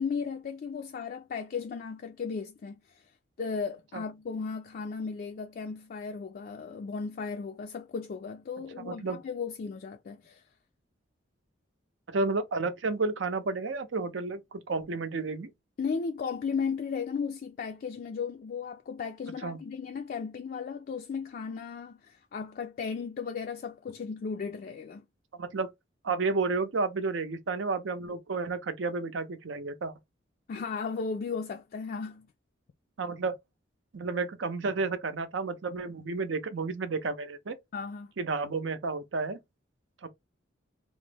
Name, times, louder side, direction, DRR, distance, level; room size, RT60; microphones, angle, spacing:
voice 1, 0.0-3.0 3.4-10.4 15.8-25.0 30.5-32.3 37.7-38.1, left 5 dB, 50° left, 0.3 m, -35 dB
voice 2, 8.8-9.2 12.1-15.5 19.4-19.6 25.4-25.7 26.0-29.9 33.0-33.3 33.9-37.5 38.2-39.4 40.0-40.1, right 3 dB, 80° right, 0.6 m, -31 dB
3.0 x 2.0 x 3.3 m
head